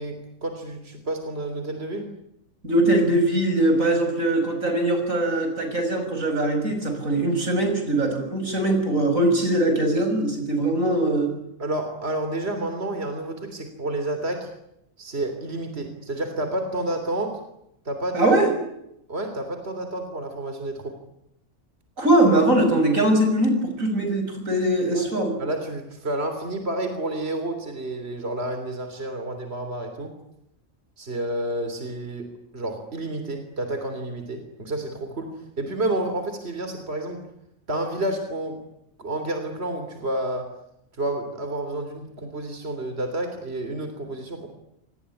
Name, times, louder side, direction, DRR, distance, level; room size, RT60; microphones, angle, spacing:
voice 1, 0.0-2.1 11.6-14.5 15.0-17.4 17.9-18.3 19.1-20.9 24.9-25.1 25.4-30.1 31.0-32.3 32.5-37.2 37.7-38.6 39.0-40.5 41.0-44.5, right 1 dB, 50° right, 7 dB, 3.6 m, -30 dB
voice 2, 2.6-11.3 18.1-18.5 22.0-25.3, right 1 dB, 85° right, 5 dB, 7.0 m, -21 dB
27.0 x 20.0 x 9.8 m, 0.81 s
omnidirectional pair, 1.4 m